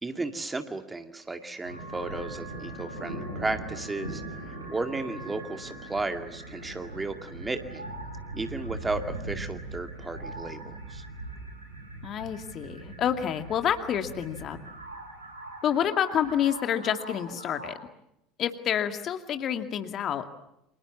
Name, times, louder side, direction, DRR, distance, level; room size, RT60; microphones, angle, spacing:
voice 1, 0.0-7.8 8.3-11.0, right 3 dB, 15° right, 7 dB, 2.3 m, -34 dB
sound 1, 1.6-17.7, right 2 dB, 85° right, 4.7 m, -40 dB
voice 2, 12.0-14.6 15.6-17.8 18.4-20.2, left 9 dB, 40° left, 7 dB, 2.4 m, -28 dB
29.5 x 27.0 x 7.3 m, 0.82 s
figure-of-eight pair, 70°, 0 cm